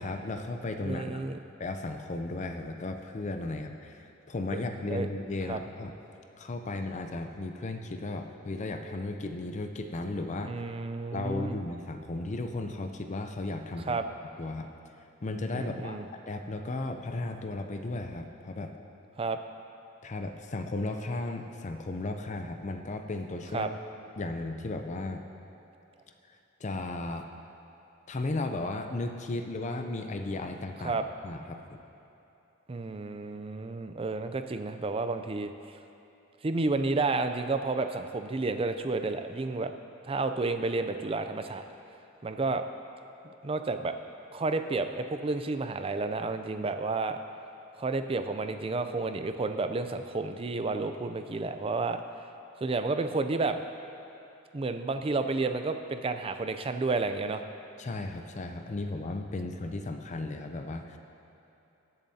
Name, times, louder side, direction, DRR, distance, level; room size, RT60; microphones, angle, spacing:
voice 1, 0.0-1.2 1.6-5.9 6.4-10.5 11.1-14.0 14.4-14.7 15.2-18.7 20.0-23.7 24.2-25.2 26.3-27.3 28.1-31.0 31.2-31.8 57.8-61.0, left 2 dB, 35° left, 5 dB, 0.5 m, -35 dB
voice 2, 0.8-1.4 4.9-5.1 5.5-5.6 10.5-11.6 13.8-14.1 15.5-16.1 19.2-19.4 23.5-23.7 30.8-31.0 32.7-35.5 36.4-39.7 40.0-41.6 42.2-42.6 43.4-43.9 44.3-47.2 47.8-52.0 52.6-53.6 54.5-57.4, right 3 dB, 25° right, 8 dB, 0.4 m, -31 dB
21.0 x 7.2 x 2.8 m, 3.0 s
head